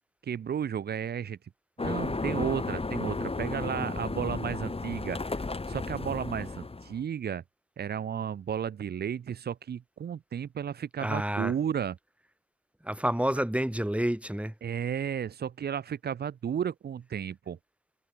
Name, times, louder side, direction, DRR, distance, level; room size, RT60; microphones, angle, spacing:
voice 1, 0.3-1.4 1.8-5.2 5.7-7.4 7.8-12.0 14.6-17.6, right 8 dB, 80° right, 1.2 m, -33 dB
sound 1, 1.8-7.0, left 3 dB, 35° left, 2.9 m, -33 dB
voice 2, 11.0-11.5 12.8-14.5, right 1 dB, 5° right, 6.1 m, -29 dB
supercardioid pair, 40°, 16 cm